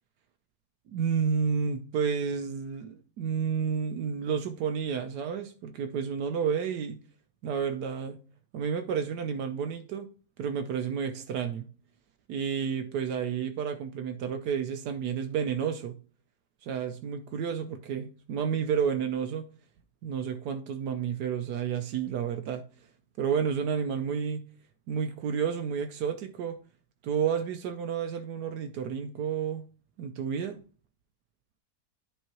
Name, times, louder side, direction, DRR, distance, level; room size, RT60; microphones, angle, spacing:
voice 1, 0.9-7.0 7.4-8.2 8.5-10.1 10.4-11.7 12.3-16.0 16.6-19.5 20.0-22.6 23.2-24.4 24.9-26.6 27.0-29.6 30.0-30.6, right 7 dB, 80° right, 1.2 m, -31 dB
10.0 x 4.5 x 2.9 m
omnidirectional pair, 1.7 m